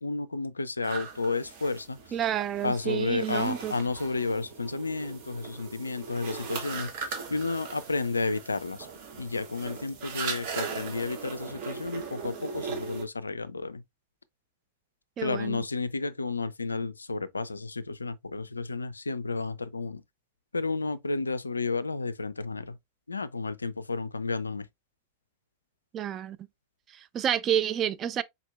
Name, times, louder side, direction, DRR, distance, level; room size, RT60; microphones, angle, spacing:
voice 1, 0.0-2.0 2.6-8.9 9.2-13.8 15.2-20.0 20.5-22.8 23.1-24.7, left 3 dB, 80° left, 0.3 m, -32 dB
sound 1, 0.8-13.0, right 5 dB, 50° right, 1.3 m, -39 dB
voice 2, 2.1-3.7 15.2-15.6 25.9-26.4 26.9-28.2, right 10 dB, 30° right, 0.3 m, -29 dB
4.2 x 4.0 x 2.2 m
figure-of-eight pair, 90°, 0 cm